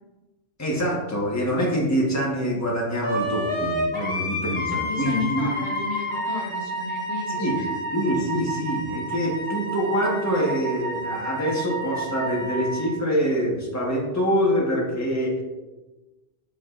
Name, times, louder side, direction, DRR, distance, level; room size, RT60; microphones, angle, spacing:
voice 1, 0.6-5.5 7.3-7.7 7.9-15.4, equal, 15° left, -3 dB, 1.4 m, -25 dB
Wind instrument woodwind instrument, 3.0-12.9, equal, 50° left, 1.4 m, -30 dB
voice 2, 4.7-7.8, left 4 dB, 85° left, -3 dB, 1.8 m, -33 dB
7.4 x 7.2 x 2.5 m, 1.1 s
omnidirectional pair, 1.1 m